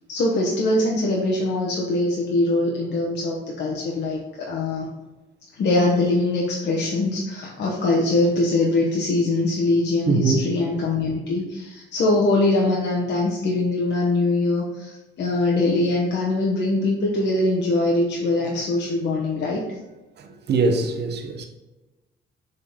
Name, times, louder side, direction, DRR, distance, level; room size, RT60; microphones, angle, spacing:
voice 1, 0.1-4.9 5.6-19.8, left 2 dB, 60° left, -2 dB, 1.1 m, -22 dB
voice 2, 10.1-10.4 20.2-21.5, right 4 dB, 60° right, 3 dB, 0.9 m, -22 dB
6.6 x 4.0 x 3.6 m, 1.1 s
cardioid pair, 90°, 20 cm